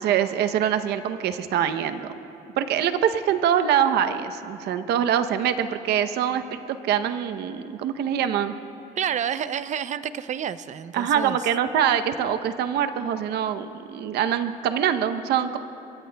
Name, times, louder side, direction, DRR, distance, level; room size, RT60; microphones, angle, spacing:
voice 1, 0.0-2.1 2.6-8.5 10.9-15.6, right 9 dB, 75° right, 9 dB, 0.8 m, -24 dB
voice 2, 9.0-11.4, right 9 dB, 45° right, 14 dB, 0.5 m, -29 dB
23.5 x 22.0 x 2.3 m, 2.9 s
cardioid pair, 110°, 17 cm